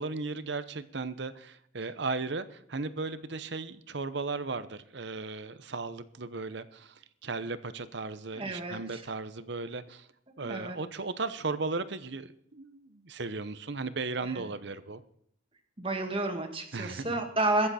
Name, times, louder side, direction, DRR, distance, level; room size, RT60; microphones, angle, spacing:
voice 1, 0.0-10.1 10.4-15.0 16.7-17.2, right 3 dB, 60° right, 13 dB, 0.8 m, -36 dB
voice 2, 8.3-9.0 10.4-10.8 14.2-14.5 15.8-17.7, right 2 dB, 30° right, 4 dB, 1.8 m, -31 dB
22.5 x 7.8 x 4.3 m, 0.69 s
head